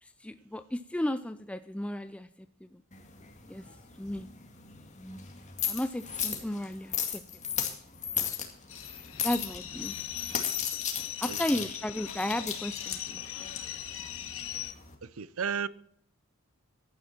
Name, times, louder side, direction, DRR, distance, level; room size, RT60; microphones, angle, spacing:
voice 1, 0.0-2.3 2.6-2.8 3.5-3.6 4.0-4.3 5.6-7.2 8.2-8.3 9.2-10.0 11.2-13.5, left 1 dB, 5° left, 0.4 m, -34 dB
sound 1, 2.9-14.9, left 8 dB, 35° left, 2.2 m, -36 dB
sound 2, 8.7-14.7, left 11 dB, 75° left, 1.5 m, -40 dB
voice 2, 11.3-11.6 15.0-15.7, right 6 dB, 85° right, 0.7 m, -34 dB
15.5 x 11.5 x 4.4 m
head